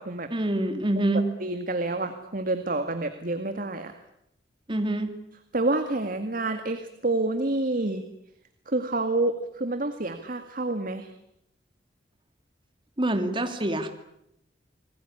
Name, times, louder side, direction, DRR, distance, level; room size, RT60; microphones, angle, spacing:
voice 1, 0.3-1.3 4.7-5.1 13.0-13.9, right 1 dB, 30° right, 6 dB, 2.7 m, -26 dB
voice 2, 1.4-3.9 5.5-8.0 8.7-11.1, right 2 dB, 50° right, 8 dB, 2.0 m, -28 dB
28.5 x 20.0 x 9.8 m, 0.78 s
head